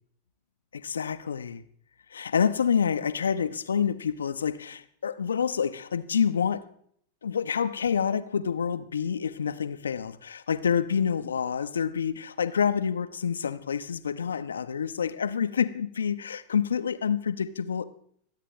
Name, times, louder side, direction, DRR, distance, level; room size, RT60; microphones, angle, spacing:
voice 1, 0.7-1.6 2.1-6.6 7.2-17.9, left 7 dB, 70° left, 0.6 m, -28 dB
25.0 x 8.4 x 3.2 m
figure-of-eight pair, 90°, 0 cm